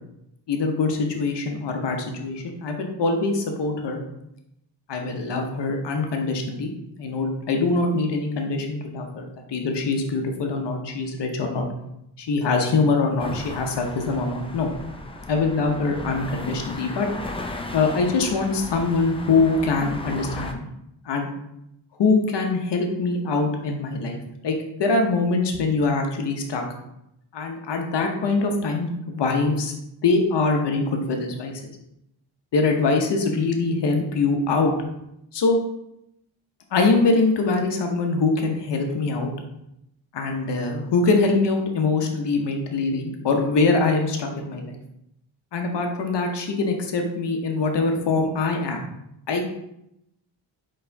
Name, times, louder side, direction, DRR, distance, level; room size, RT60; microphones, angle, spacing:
voice 1, 0.5-4.0 4.9-6.7 7.0-11.6 12.2-14.7 15.3-17.1 17.7-20.7 21.0-21.3 22.0-26.6 27.3-29.7 30.0-31.6 32.5-34.7 35.3-35.6 36.7-39.3 40.1-44.8 45.5-48.9 49.3-49.4, left 3 dB, 60° left, 3 dB, 1.0 m, -23 dB
sound 1, 13.2-20.5, left 2 dB, 10° left, 0.5 m, -36 dB
4.3 x 3.2 x 3.4 m, 0.82 s
cardioid pair, 55°, 47 cm